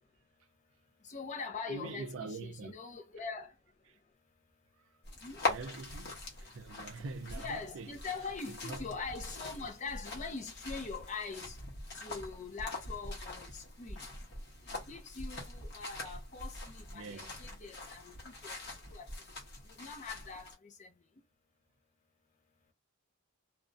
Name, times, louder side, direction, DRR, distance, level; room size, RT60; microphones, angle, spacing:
voice 1, 1.0-3.5 5.2-5.4 7.3-11.6 12.0-14.0 14.9-18.1 18.4-18.5 18.9-19.1 19.8-20.9, left 4 dB, 35° left, 0.5 m, -43 dB
voice 2, 1.7-2.7 3.9-4.0 5.5-7.9 8.5-9.0 16.1-16.2 16.9-17.3, right 3 dB, 60° right, 0.4 m, -44 dB
sound 1, 5.0-20.5, left 2 dB, 50° left, 1.0 m, -43 dB
2.4 x 2.1 x 2.5 m
head